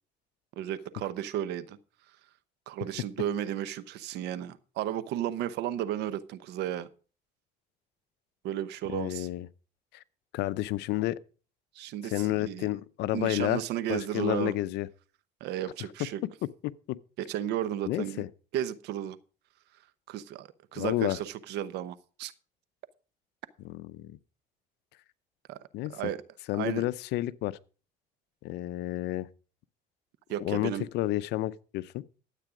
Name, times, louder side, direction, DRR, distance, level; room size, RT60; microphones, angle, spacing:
voice 1, 0.6-1.8 2.7-6.9 8.4-9.3 11.7-12.7 13.1-14.5 15.4-16.2 17.2-18.2 18.5-19.2 20.1-22.3 25.5-25.6 25.9-26.2 26.5-26.8 30.3-30.9, right 11 dB, 85° right, 0.9 m, -34 dB
voice 2, 8.9-9.5 9.9-10.0 10.3-11.2 12.0-13.6 13.9-14.9 16.6-17.0 17.9-18.3 20.8-21.2 23.6-24.2 25.7-25.9 26.5-27.6 28.4-29.3 30.4-32.0, left 16 dB, 85° left, 0.6 m, -30 dB
12.5 x 8.4 x 5.0 m
cardioid pair, 110°, 17 cm